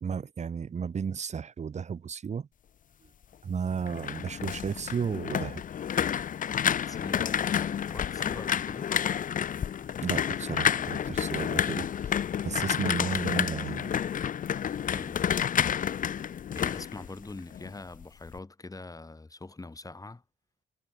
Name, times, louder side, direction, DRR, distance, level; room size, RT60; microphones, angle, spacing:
voice 1, 0.0-2.5 3.4-5.6 10.0-13.9, right 6 dB, 35° right, 0.8 m, -33 dB
sound 1, 3.7-17.7 18.0-18.4, left 9 dB, 40° left, 0.6 m, -30 dB
voice 2, 6.9-8.9 14.9-15.2 16.5-20.2, left 3 dB, 15° left, 2.9 m, -43 dB
cardioid pair, 90°, 20 cm